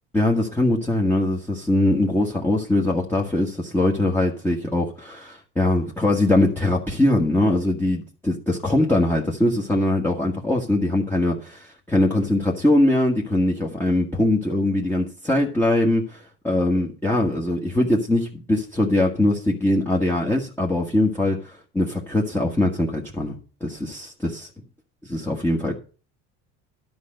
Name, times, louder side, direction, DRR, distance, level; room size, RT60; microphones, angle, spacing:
voice 1, 0.1-24.5 25.1-25.7, left 1 dB, 5° left, 1.5 m, -22 dB
11.0 x 5.2 x 7.7 m
supercardioid pair, 125°, 32 cm